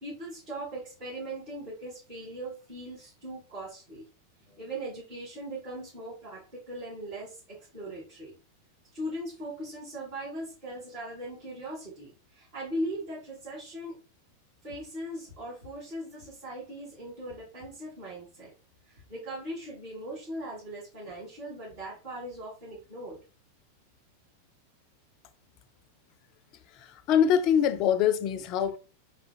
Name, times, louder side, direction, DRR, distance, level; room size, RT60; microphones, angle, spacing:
voice 1, 0.0-4.0 4.4-8.3 8.9-14.0 14.6-18.5 18.9-23.2, right 1 dB, 55° right, 2.3 m, -39 dB
voice 2, 26.7-28.8, left 8 dB, 40° left, 0.4 m, -24 dB
4.3 x 3.8 x 2.2 m
figure-of-eight pair, 90°, 0 cm